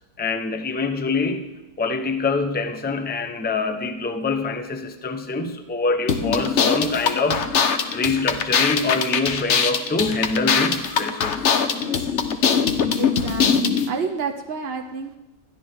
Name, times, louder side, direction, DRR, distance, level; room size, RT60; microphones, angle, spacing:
voice 1, 0.2-1.5 1.8-7.4 7.9-11.5, left 3 dB, 15° left, 7 dB, 0.4 m, -25 dB
sound 1, 6.1-13.9, left 6 dB, 50° left, 1.0 m, -22 dB
voice 2, 12.7-15.2, right 5 dB, 50° right, 5 dB, 0.8 m, -30 dB
20.5 x 14.0 x 3.6 m, 1.0 s
omnidirectional pair, 1.9 m